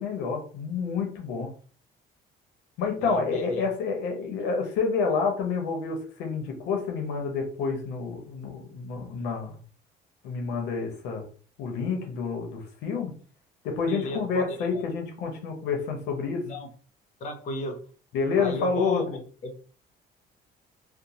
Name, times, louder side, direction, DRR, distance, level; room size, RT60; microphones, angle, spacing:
voice 1, 0.0-1.5 2.8-9.6 10.2-11.2 11.6-13.1 13.6-16.4 18.1-19.2, left 5 dB, 90° left, 3 dB, 0.7 m, -29 dB
voice 2, 3.0-3.7 13.9-14.8 16.4-16.7 17.2-17.8 18.4-19.0 19.4-19.5, left 2 dB, 45° left, 3 dB, 0.6 m, -33 dB
2.9 x 2.0 x 2.7 m, 0.42 s
cardioid pair, 110°, 17 cm